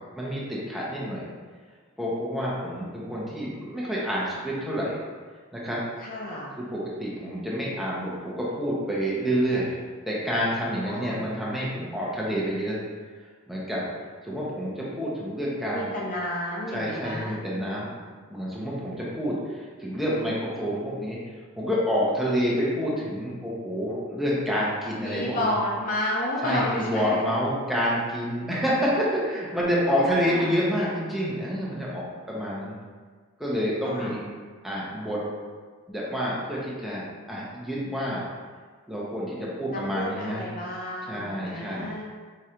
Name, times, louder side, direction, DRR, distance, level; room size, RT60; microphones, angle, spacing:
voice 1, 0.2-1.3 2.0-5.0 5.5-5.8 6.6-9.7 10.1-12.8 13.5-13.8 14.2-15.9 16.7-17.9 18.3-21.2 21.6-25.5 26.4-32.7 33.4-34.2 34.6-35.2 35.9-38.2 38.9-40.4 41.1-41.9, equal, ahead, -7 dB, 0.7 m, -28 dB
voice 2, 6.0-6.6 10.8-11.2 15.7-17.4 25.0-27.2 30.3-30.5 33.8-34.1 39.7-42.0, left 1 dB, 35° left, -3 dB, 0.5 m, -31 dB
4.9 x 3.1 x 2.9 m, 1.5 s
head